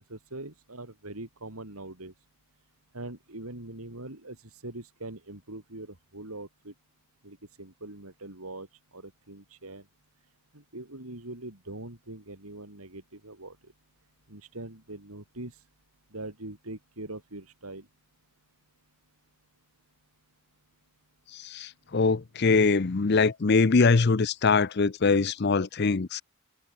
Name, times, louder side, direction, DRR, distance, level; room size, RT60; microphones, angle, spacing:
voice 1, 0.1-2.1 2.9-6.7 7.2-9.9 10.5-13.7 14.3-15.7 16.1-17.9, right 2 dB, 80° right, 3.8 m, -42 dB
voice 2, 21.3-26.2, left 4 dB, 45° left, 0.6 m, -23 dB
head